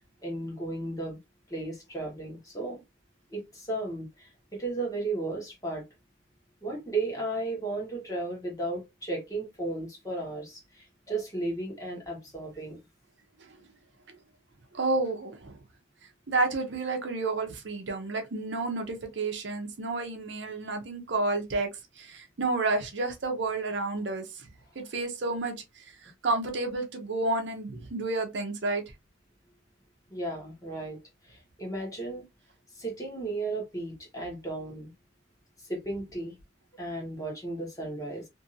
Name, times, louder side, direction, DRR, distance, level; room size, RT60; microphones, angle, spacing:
voice 1, 0.2-1.2 1.5-2.8 3.3-5.8 6.6-12.8 30.1-31.0 31.3-32.2 32.8-34.9 35.7-36.3 36.8-38.2, right 2 dB, 20° left, 1.2 m, -34 dB
voice 2, 14.7-15.5 16.3-21.7 22.0-24.5 24.8-25.6 26.0-28.8, right 3 dB, 65° right, 0.7 m, -30 dB
2.6 x 2.6 x 2.6 m
head